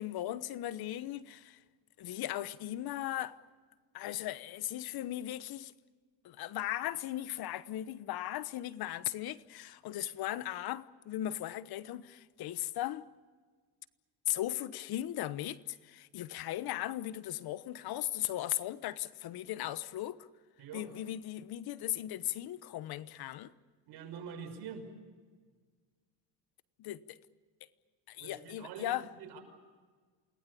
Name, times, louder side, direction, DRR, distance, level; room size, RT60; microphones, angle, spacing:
voice 1, 0.0-1.6 2.0-3.4 3.9-5.7 6.2-13.1 14.3-20.2 20.7-23.5 26.8-27.2 28.1-29.1, left 13 dB, 60° left, 1.1 m, -37 dB
voice 2, 20.6-20.9 23.9-24.9 28.2-28.9 29.2-29.4, right 6 dB, 65° right, 5.8 m, -45 dB
28.5 x 20.0 x 8.5 m
cardioid pair, 120°, 42 cm